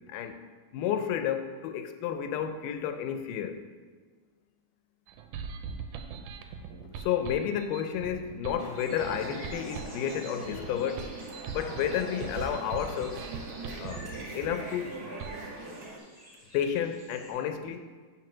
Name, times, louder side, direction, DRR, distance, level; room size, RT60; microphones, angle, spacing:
voice 1, 0.1-0.4 0.7-3.6 7.0-11.1 11.5-13.2 13.8-14.1 14.3-15.0 16.5-17.9, left 9 dB, 80° left, 8 dB, 2.1 m, -31 dB
sound 1, 5.1-15.4, right 6 dB, 80° right, 2.0 m, -41 dB
sound 2, 8.6-16.0, right 2 dB, 60° right, 1.6 m, -42 dB
sound 3, 8.8-17.3, equal, 15° left, 1.0 m, -49 dB
6.0 x 4.7 x 5.9 m, 1.5 s
omnidirectional pair, 3.8 m